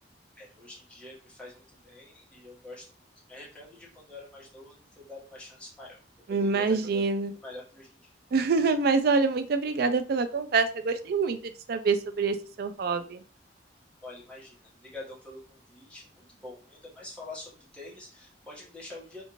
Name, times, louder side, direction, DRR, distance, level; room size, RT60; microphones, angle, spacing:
voice 1, 0.3-3.0 3.3-6.0 6.3-7.0 7.4-8.1 14.0-19.2, left 2 dB, 5° left, -6 dB, 1.2 m, -46 dB
voice 2, 6.3-7.3 8.3-13.2, right 4 dB, 60° right, 9 dB, 0.4 m, -26 dB
2.6 x 2.5 x 2.9 m, 0.37 s
head